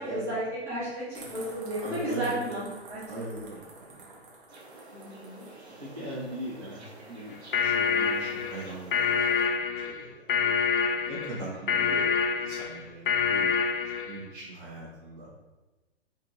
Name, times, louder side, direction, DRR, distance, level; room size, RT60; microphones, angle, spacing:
voice 1, 0.0-3.2 4.9-5.5 11.7-11.8, right 1 dB, 10° right, -12 dB, 1.0 m, -33 dB
sound 1, 1.1-5.6, right 3 dB, 50° right, 1.2 m, -48 dB
voice 2, 1.8-2.5 3.1-4.2 5.8-9.2 9.8-10.7 11.0-12.1 12.3-13.5 14.0-15.3, right 1 dB, 30° right, -5 dB, 1.5 m, -40 dB
sound 2, 4.5-9.5, right 1 dB, 70° right, 1.1 m, -50 dB
sound 3, 7.3-14.3, left 6 dB, 50° left, 0.4 m, -27 dB
5.1 x 2.6 x 2.9 m, 1.1 s
figure-of-eight pair, 120°, 34 cm